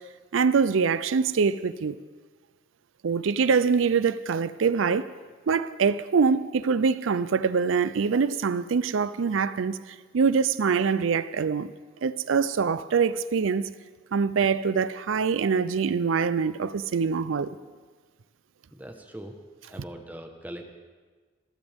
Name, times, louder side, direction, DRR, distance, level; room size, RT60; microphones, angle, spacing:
voice 1, 0.3-2.0 3.0-5.1 5.5-11.7 12.0-13.7 14.1-17.6, right 5 dB, 85° right, 0.5 m, -24 dB
voice 2, 18.7-19.4 19.7-20.6, right 1 dB, 10° right, 1.2 m, -41 dB
26.5 x 13.0 x 3.6 m
head